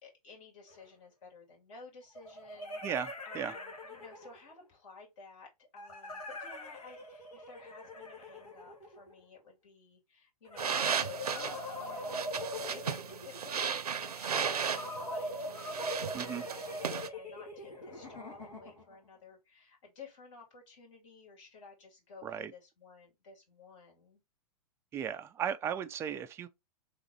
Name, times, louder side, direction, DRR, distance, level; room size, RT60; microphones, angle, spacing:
voice 1, 0.0-2.8 3.2-12.2 12.7-24.2, left 4 dB, 50° left, 2.8 m, -54 dB
sound 1, 0.7-0.8 2.1-4.5 5.8-9.2 10.4-13.5 14.7-18.9, left 1 dB, 75° left, 1.8 m, -42 dB
voice 2, 2.8-3.5 16.1-16.5 22.2-22.5 24.9-26.5, right 8 dB, 15° right, 0.3 m, -36 dB
sound 2, 10.6-17.1, right 6 dB, 80° right, 0.6 m, -35 dB
3.9 x 3.2 x 4.2 m
figure-of-eight pair, 110°, 20 cm